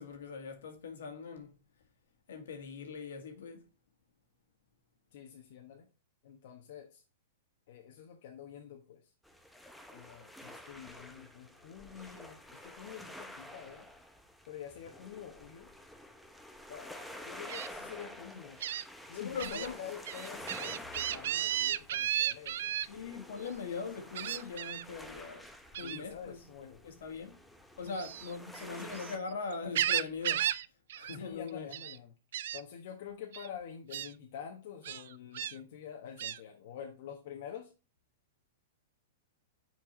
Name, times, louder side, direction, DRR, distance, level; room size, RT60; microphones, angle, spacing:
voice 1, 0.0-1.6 2.3-3.6 19.2-19.8 22.9-25.5 25.8-26.4 26.8-27.4 27.8-30.5 30.9-31.7, left 5 dB, 80° left, 1.8 m, -41 dB
voice 2, 5.1-5.9 6.2-7.0 7.7-9.1 9.9-13.9 14.5-15.7 16.7-18.6 19.1-22.8 25.8-26.8 31.1-32.1 32.5-37.7, left 8 dB, 60° left, 1.1 m, -47 dB
sound 1, 9.2-29.2, left 1 dB, ahead, 0.8 m, -50 dB
Gull seagull, 17.5-17.7 18.6-18.8 19.4-19.7 20.0-22.9 24.1-24.8 25.7-26.0 27.9-29.1 29.5-30.6 30.9-31.2 31.5-32.0 32.3-32.6 33.3-33.5 33.9-34.1 34.8-35.5 36.2-36.4, right 11 dB, 70° right, 0.4 m, -34 dB
6.1 x 4.6 x 4.3 m
hypercardioid pair, 125°, 0 cm